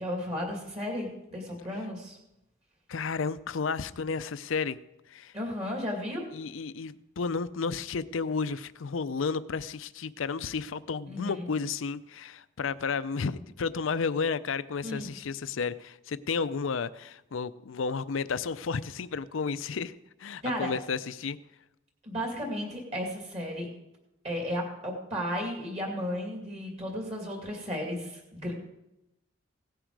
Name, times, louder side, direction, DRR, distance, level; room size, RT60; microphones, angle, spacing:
voice 1, 0.0-2.2 5.3-6.2 11.1-11.4 14.8-15.1 20.4-20.7 22.0-23.7 24.2-28.5, equal, 30° right, 1 dB, 2.4 m, -34 dB
voice 2, 2.9-4.8 5.1-5.3 6.3-19.9 20.2-21.4, left 5 dB, 75° left, 14 dB, 0.5 m, -32 dB
17.0 x 10.0 x 4.7 m, 0.91 s
head